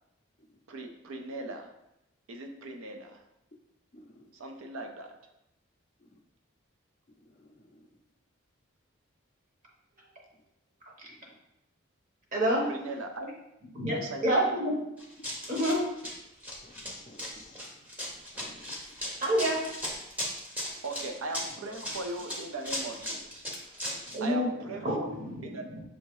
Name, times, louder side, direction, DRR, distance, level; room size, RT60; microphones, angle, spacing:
voice 1, 0.7-1.7 2.3-3.2 4.3-5.1 12.6-13.4 13.8-14.6 20.8-23.7 24.2-25.8, right 2 dB, 85° right, 4 dB, 0.6 m, -39 dB
voice 2, 3.9-4.3 7.4-7.8 16.6-17.7 18.3-18.8, left 2 dB, 35° left, 3 dB, 0.4 m, -54 dB
voice 3, 12.3-12.7 13.7-13.9 14.2-14.7 15.5-15.8 19.2-19.7 24.1-24.5 24.8-24.9 25.2-25.3, equal, 40° right, -2 dB, 1.0 m, -26 dB
Run, 15.0-24.2, left 1 dB, 10° right, 0.7 m, -37 dB
6.3 x 2.7 x 3.1 m, 0.87 s
head